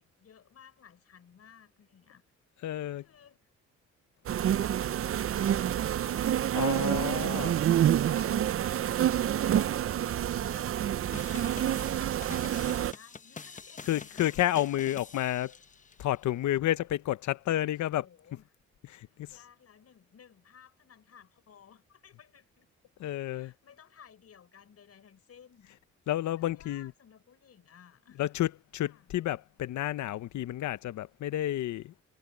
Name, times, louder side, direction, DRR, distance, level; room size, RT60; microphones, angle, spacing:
voice 1, 0.0-2.2 2.8-3.5 4.2-6.7 7.0-8.9 9.1-14.5 17.6-18.5 19.3-22.7 23.3-25.7 26.1-28.2 28.8-29.1, left 8 dB, 55° left, 6.4 m, -57 dB
voice 2, 2.6-3.0 6.5-7.5 13.9-15.6 16.0-18.0 18.9-19.3 23.0-23.5 26.1-26.9 28.2-31.9, left 13 dB, 70° left, 0.9 m, -30 dB
sound 1, 4.3-12.9, right 10 dB, 45° right, 0.6 m, -28 dB
sound 2, 11.1-16.0, left 5 dB, 25° left, 0.9 m, -47 dB
cardioid pair, 90°, 30 cm